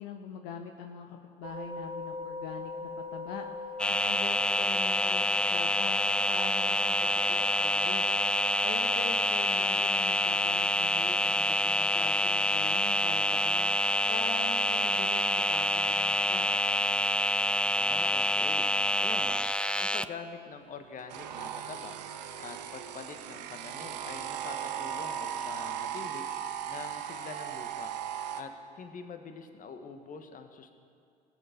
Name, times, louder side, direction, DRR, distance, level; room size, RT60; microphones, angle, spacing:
voice 1, 0.0-7.0 7.3-13.7 14.1-16.5, left 7 dB, 65° left, 4 dB, 0.9 m, -43 dB
sound 1, 1.4-9.3, left 3 dB, 35° right, 1.6 m, -41 dB
sound 2, 3.8-20.1, left 1 dB, 5° left, 0.3 m, -27 dB
voice 2, 17.7-18.7 19.0-19.4 19.8-21.9 22.4-26.3 26.7-27.9 28.3-30.7, left 5 dB, 40° left, 7 dB, 1.5 m, -44 dB
sound 3, 21.1-28.4, right 9 dB, 80° right, 0.8 m, -37 dB
19.5 x 8.1 x 5.2 m, 2.5 s
hypercardioid pair, 65°, 21 cm